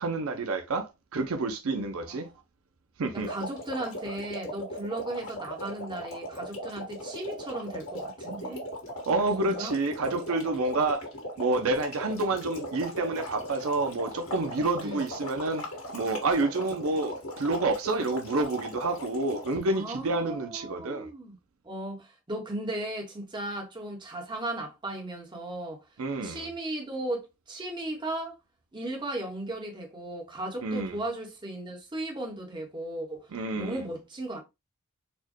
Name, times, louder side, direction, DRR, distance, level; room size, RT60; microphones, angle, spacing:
voice 1, 0.0-2.3 3.0-3.3 9.1-11.1 11.4-15.6 15.9-21.1 26.0-26.5 30.6-31.0 33.3-33.8, right 2 dB, 75° right, 0.5 m, -29 dB
voice 2, 3.1-8.7 9.4-9.7 14.8-15.1 16.6-16.7 19.7-21.4 21.6-25.8 26.2-28.4 28.7-33.3 33.6-34.4, right 1 dB, 20° right, 1.0 m, -36 dB
sound 1, 3.2-19.7, equal, 75° left, 1.6 m, -39 dB
4.2 x 2.2 x 2.9 m
head